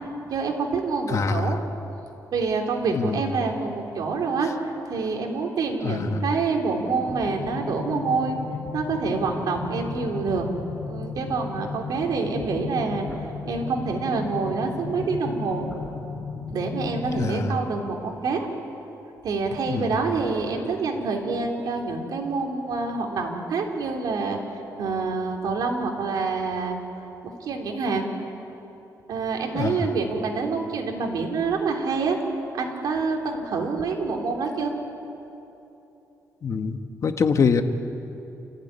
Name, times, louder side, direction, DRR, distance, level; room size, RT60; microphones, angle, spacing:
voice 1, 0.3-1.6 2.3-4.5 4.9-8.4 8.7-10.5 10.9-13.1 13.4-15.7 16.5-18.5 19.2-24.4 24.8-26.8 27.2-28.1 29.1-32.2 32.5-34.7, right 4 dB, 75° right, 1 dB, 3.6 m, -27 dB
voice 2, 1.1-1.6 2.9-3.2 5.8-6.3 17.1-17.5 19.7-19.9 29.5-29.8 36.4-37.6, left 5 dB, 50° left, 7 dB, 1.5 m, -24 dB
sound 1, 7.1-17.1, left 4 dB, 5° left, 5.2 m, -35 dB
29.0 x 15.5 x 9.8 m, 2.9 s
cardioid pair, 110°, 7 cm